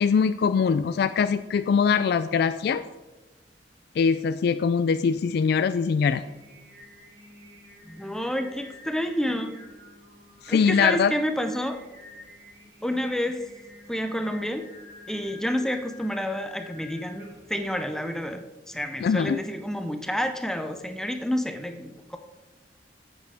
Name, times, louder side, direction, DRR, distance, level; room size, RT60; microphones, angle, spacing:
voice 1, 0.0-2.8 4.0-6.2 10.4-11.1 19.0-19.4, left 6 dB, 65° left, 12 dB, 0.3 m, -22 dB
Singing, 5.9-17.6, left 2 dB, 80° right, 3.4 m, -49 dB
voice 2, 7.8-9.7 10.5-11.8 12.8-13.4 13.9-14.7 15.1-22.2, equal, 5° left, 7 dB, 0.5 m, -29 dB
9.6 x 8.3 x 3.4 m, 1.1 s
head